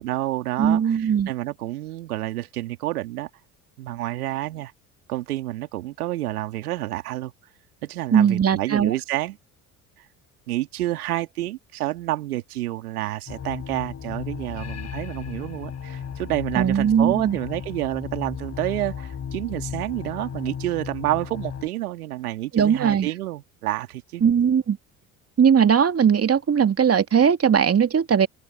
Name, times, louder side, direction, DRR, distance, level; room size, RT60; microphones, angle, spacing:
voice 1, 0.0-3.3 3.8-4.7 5.1-7.3 7.8-9.4 10.5-24.2, right 16 dB, 80° right, 2.6 m, -29 dB
voice 2, 0.6-1.3 8.1-8.9 16.6-17.4 22.5-23.1 24.2-24.8 25.4-28.3, right 7 dB, 30° right, 2.4 m, -19 dB
sound 1, 13.3-21.7, left 7 dB, 35° left, 4.4 m, -35 dB
open air
hypercardioid pair, 60°, 44 cm